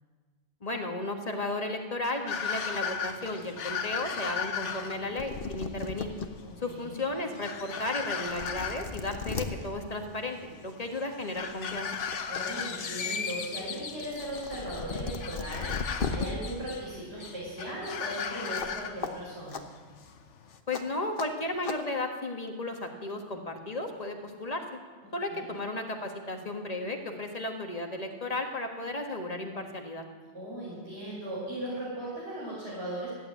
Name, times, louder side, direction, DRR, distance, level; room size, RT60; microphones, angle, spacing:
voice 1, 0.6-6.1 6.6-11.9 20.7-24.6 25.1-30.0, left 2 dB, 35° left, 3 dB, 1.6 m, -34 dB
sound 1, 2.3-20.6, left 6 dB, 75° left, 1.3 m, -37 dB
sound 2, 4.9-5.0 5.2-6.3 6.8-6.9 7.8-7.9 8.2-9.5 10.8-11.0 11.4-12.4 12.8-16.3 18.5-18.7 19.0-19.1 19.5-19.6 20.7-20.8 21.2-21.3 21.6-21.8, left 5 dB, 50° left, 1.1 m, -36 dB
voice 2, 6.4-7.0 12.3-19.6 25.3-25.6 30.3-33.1, right 1 dB, 65° right, -10 dB, 5.9 m, -38 dB
14.5 x 8.7 x 9.2 m, 1.5 s
omnidirectional pair, 1.2 m